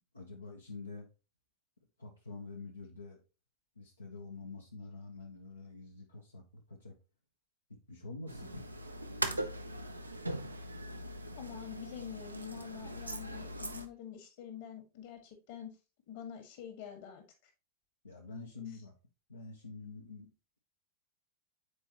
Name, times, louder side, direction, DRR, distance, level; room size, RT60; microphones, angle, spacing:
voice 1, 0.1-1.1 2.0-3.2 3.8-7.0 7.7-8.7 18.0-18.9 19.3-20.3, left 3 dB, 80° left, 1.1 m, -47 dB
sound 1, 8.3-13.9, right 1 dB, 85° right, 0.6 m, -40 dB
voice 2, 11.3-15.8 16.1-17.5 18.6-18.7, left 9 dB, 50° left, 1.8 m, -46 dB
8.1 x 4.5 x 2.9 m
figure-of-eight pair, 90°, 0 cm